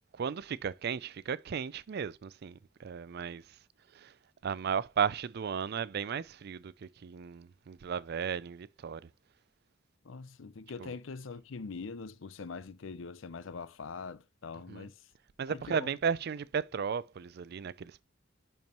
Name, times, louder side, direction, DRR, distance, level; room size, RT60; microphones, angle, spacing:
voice 1, 0.1-3.6 3.9-4.1 4.4-9.1 10.8-10.9 14.7-14.9 15.4-18.0, right 7 dB, 55° right, 0.4 m, -35 dB
voice 2, 10.0-15.0 15.5-15.9, left 4 dB, 85° left, 0.6 m, -43 dB
10.5 x 4.5 x 3.0 m
head